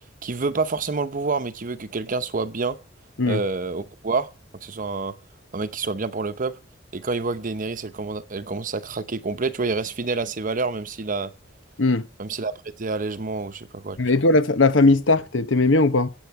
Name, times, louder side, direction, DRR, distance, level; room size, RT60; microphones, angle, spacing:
voice 1, 0.2-2.8 3.3-5.2 5.5-6.6 6.9-11.3 12.2-14.0, right 3 dB, 45° right, 0.8 m, -28 dB
voice 2, 14.0-16.1, left 2 dB, 70° left, 1.0 m, -18 dB
22.0 x 8.2 x 4.7 m
head